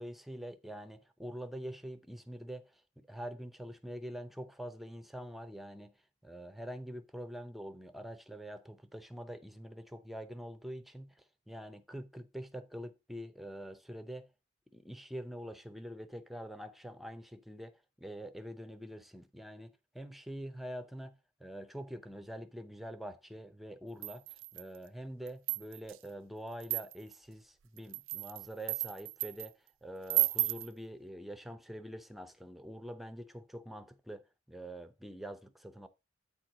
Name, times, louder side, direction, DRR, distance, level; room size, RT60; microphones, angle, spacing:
voice 1, 0.0-6.0 6.2-14.3 14.7-35.9, equal, ahead, 0.6 m, -45 dB
sound 1, 24.0-24.8 25.3-26.0 26.6-27.2 27.8-29.5 30.1-30.7, right 20 dB, 80° right, 0.3 m, -33 dB
8.5 x 4.5 x 4.9 m
head